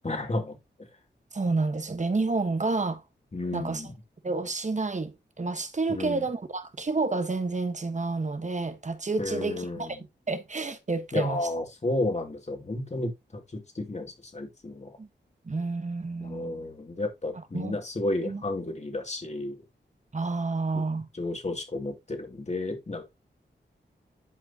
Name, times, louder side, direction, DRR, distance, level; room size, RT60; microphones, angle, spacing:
voice 1, 0.0-0.6 3.3-3.9 5.9-6.2 9.2-9.9 11.1-15.0 16.2-19.6 20.7-20.8 21.1-23.0, left 2 dB, 40° left, 2.6 m, -32 dB
voice 2, 1.3-3.0 3.5-3.9 4.2-10.0 10.3-11.4 15.0-15.1 15.4-16.7 17.5-17.8 18.2-18.4 20.1-21.1, right 3 dB, 40° right, 1.3 m, -29 dB
11.0 x 5.0 x 2.9 m
wide cardioid pair, 70°, 19 cm